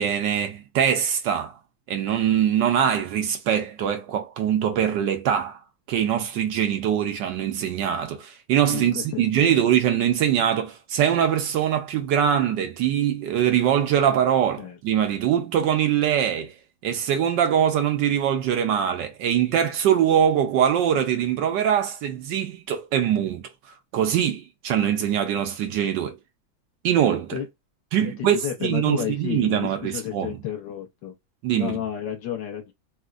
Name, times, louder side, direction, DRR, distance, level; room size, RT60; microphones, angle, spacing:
voice 1, 0.0-1.6 1.9-5.6 5.9-16.5 16.8-26.2 26.8-27.4 27.9-30.4 31.4-31.8, right 9 dB, 70° right, 1.2 m, -23 dB
voice 2, 8.7-9.6 14.6-14.8 27.3-27.5 28.0-31.1 31.6-32.7, left 10 dB, 65° left, 1.5 m, -31 dB
4.2 x 2.2 x 2.4 m
omnidirectional pair, 2.2 m